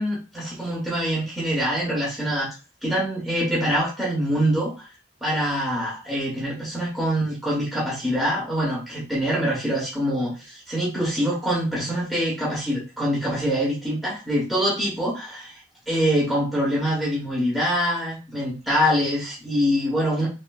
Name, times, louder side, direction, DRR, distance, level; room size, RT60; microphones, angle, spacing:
voice 1, 0.0-2.5 2.8-4.9 5.2-15.6 15.9-20.3, equal, ahead, -7 dB, 0.8 m, -24 dB
3.2 x 2.5 x 2.3 m, 0.31 s
head